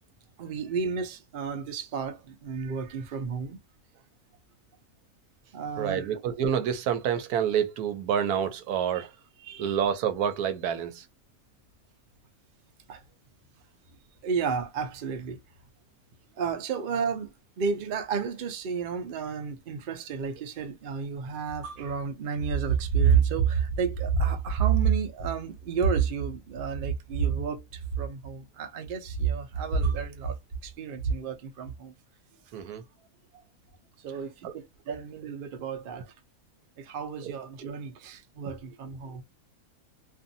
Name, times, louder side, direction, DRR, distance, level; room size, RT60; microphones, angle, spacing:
voice 1, 0.4-3.6 5.5-6.1 8.9-9.1 9.4-9.7 12.9-13.0 14.2-15.4 16.4-30.4 30.6-31.9 34.0-36.1 36.8-39.2, right 6 dB, 55° right, 0.6 m, -30 dB
voice 2, 5.8-9.1 9.6-11.1 32.5-32.8 34.4-34.5 37.2-37.3, right 8 dB, 85° right, 1.1 m, -28 dB
2.6 x 2.5 x 2.6 m
omnidirectional pair, 1.6 m